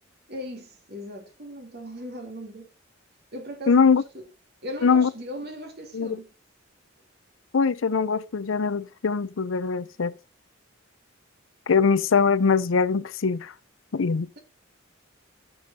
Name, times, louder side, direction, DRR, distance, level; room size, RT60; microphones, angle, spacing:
voice 1, 0.3-2.7 3.3-4.3 4.6-6.3, equal, 55° right, 3.2 m, -38 dB
voice 2, 3.7-4.0 4.8-5.1 5.9-6.2 7.5-10.1 11.7-13.5 13.9-14.4, left 5 dB, 70° left, 0.5 m, -22 dB
14.0 x 7.1 x 2.8 m
head